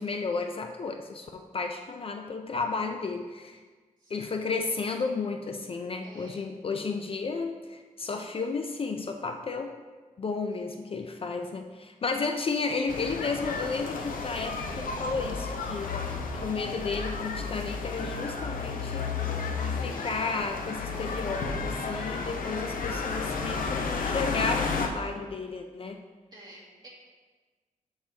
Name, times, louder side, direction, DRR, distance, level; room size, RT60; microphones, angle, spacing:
voice 1, 0.0-3.6 4.1-9.8 10.2-15.9 16.4-19.1 19.6-26.0, left 4 dB, 40° left, 5 dB, 0.4 m, -33 dB
voice 2, 6.0-6.4 10.6-10.9 16.1-16.6 26.3-26.9, right 1 dB, 30° right, -5 dB, 2.3 m, -51 dB
sound 1, 12.9-24.9, left 4 dB, 80° left, 0.7 m, -32 dB
13.0 x 4.8 x 2.8 m, 1.4 s
wide cardioid pair, 130°, 14 cm